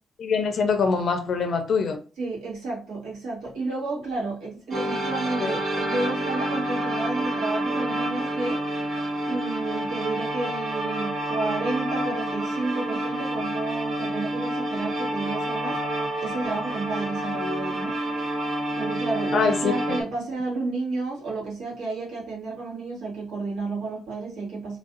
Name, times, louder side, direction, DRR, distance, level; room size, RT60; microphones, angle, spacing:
voice 1, 0.2-2.0 5.4-5.6 19.3-19.7, left 5 dB, 50° left, 0.5 m, -23 dB
voice 2, 2.2-8.6 9.2-15.8 16.2-18.0 18.8-24.8, right 3 dB, 75° right, 1.8 m, -31 dB
sound 1, 4.7-20.0, right 1 dB, 50° right, 1.1 m, -28 dB
3.1 x 2.6 x 3.8 m
cardioid pair, 150°, 0 cm